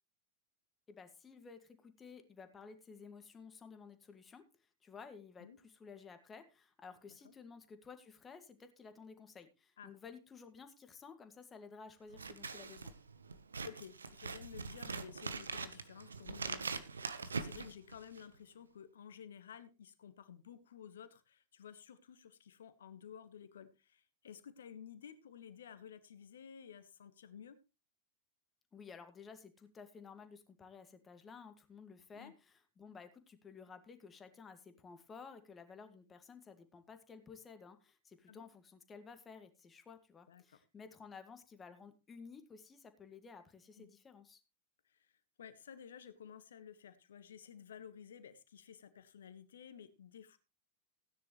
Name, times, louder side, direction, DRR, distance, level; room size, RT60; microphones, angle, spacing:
voice 1, 0.9-12.9 28.7-44.4, left 5 dB, 20° left, 8 dB, 2.0 m, -54 dB
Scissors, 12.1-18.4, right 4 dB, 75° right, 1.1 m, -43 dB
voice 2, 13.6-27.6 32.1-32.3 38.3-38.4 40.3-40.6 43.8-43.9 44.9-45.1 45.4-50.4, left 8 dB, 65° left, 12 dB, 1.5 m, -54 dB
16.5 x 10.0 x 3.2 m, 0.29 s
figure-of-eight pair, 90°, 0 cm